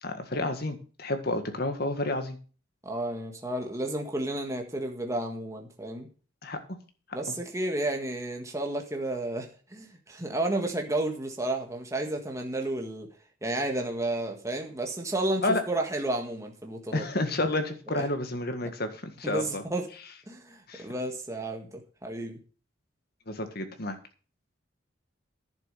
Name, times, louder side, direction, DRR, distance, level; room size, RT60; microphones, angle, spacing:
voice 1, 0.0-2.4 6.4-6.6 15.4-15.6 16.9-19.6 20.7-20.9 23.3-24.0, left 2 dB, 50° left, 7 dB, 1.7 m, -30 dB
voice 2, 2.8-6.1 7.1-13.1 13.4-17.0 17.9-18.1 19.2-19.9 20.3-22.4, right 1 dB, 15° right, 3 dB, 1.5 m, -32 dB
11.0 x 7.4 x 6.6 m, 0.38 s
head